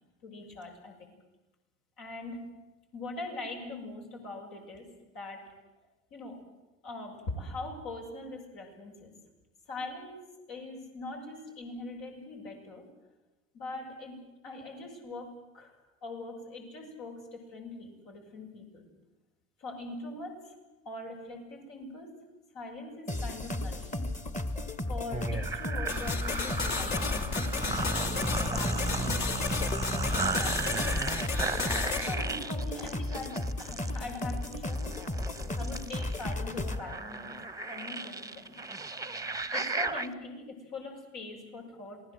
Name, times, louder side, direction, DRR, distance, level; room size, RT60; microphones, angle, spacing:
voice 1, 0.2-1.1 2.0-2.5 2.9-4.9 5.1-5.5 6.1-6.4 6.8-9.1 9.7-10.2 10.5-12.9 13.5-18.9 19.6-20.5 20.8-22.1 22.5-24.1 24.9-28.3 28.5-29.6 30.1-31.4 32.0-35.1 35.6-37.4 37.7-38.6 39.5-42.0, left 2 dB, 60° left, 0 dB, 6.9 m, -42 dB
sound 1, 23.1-36.8, left 1 dB, 20° left, 1.8 m, -35 dB
sound 2, 25.1-40.1, right 3 dB, 10° right, 1.2 m, -35 dB
sound 3, 25.9-32.1, left 5 dB, 45° left, 2.6 m, -33 dB
27.5 x 19.5 x 7.9 m, 1.1 s
hypercardioid pair, 65°, 40 cm